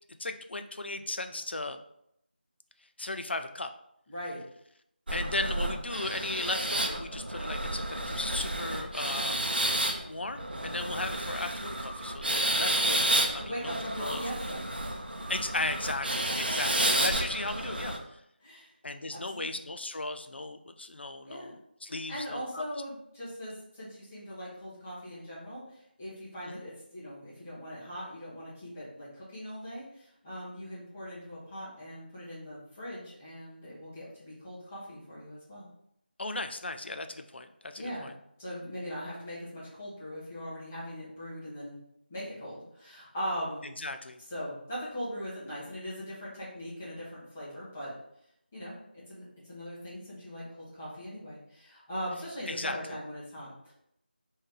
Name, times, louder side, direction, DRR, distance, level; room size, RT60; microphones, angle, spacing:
voice 1, 0.2-1.8 3.0-3.7 5.1-9.4 10.0-14.3 15.3-18.2 18.8-22.6 26.4-26.6 36.2-38.1 43.8-44.2 52.5-52.8, left 2 dB, 80° left, 8 dB, 0.4 m, -36 dB
voice 2, 4.1-4.4 13.4-14.6 16.5-16.6 18.4-18.7 19.1-19.6 21.3-21.5 21.9-35.7 37.8-38.1 38.4-41.8 42.1-43.7 44.3-47.9 48.5-48.7 49.1-53.7, equal, 10° left, -10 dB, 0.7 m, -40 dB
sound 1, 5.1-18.0, right 1 dB, 60° right, 0.6 m, -31 dB
3.3 x 2.7 x 3.5 m, 0.76 s
figure-of-eight pair, 175°, 6 cm